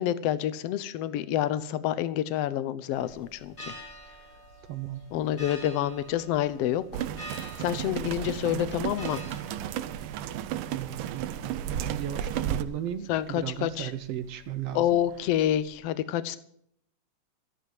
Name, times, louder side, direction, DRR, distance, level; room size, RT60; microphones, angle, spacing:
voice 1, 0.0-3.7 5.1-7.1 7.3-9.2 13.1-13.9 14.7-16.4, left 11 dB, 85° left, 14 dB, 1.3 m, -28 dB
sound 1, 2.9-15.7, right 1 dB, 30° left, 4.0 m, -49 dB
voice 2, 4.7-5.0 10.7-14.8, right 11 dB, 70° right, 10 dB, 1.5 m, -35 dB
sound 2, 6.9-12.6, right 10 dB, 85° right, 2.4 m, -33 dB
14.0 x 11.0 x 7.6 m, 0.68 s
omnidirectional pair, 3.8 m